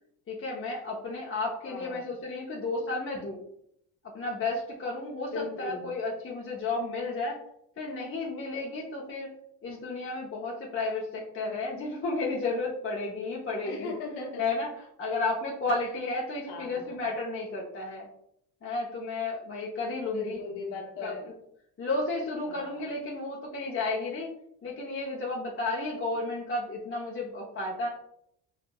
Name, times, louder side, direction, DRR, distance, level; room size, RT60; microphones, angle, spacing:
voice 1, 0.3-3.4 4.1-7.4 7.8-9.3 9.6-13.9 14.4-18.1 18.6-20.4 21.0-21.3 21.8-24.3 24.6-27.9, left 3 dB, 30° left, -2 dB, 0.8 m, -32 dB
voice 2, 1.6-2.0 5.3-5.9 13.6-14.5 16.5-16.9 20.1-21.2 22.5-22.8, left 3 dB, 80° left, 0 dB, 0.9 m, -38 dB
5.1 x 2.4 x 2.2 m, 0.73 s
hypercardioid pair, 65°, 46 cm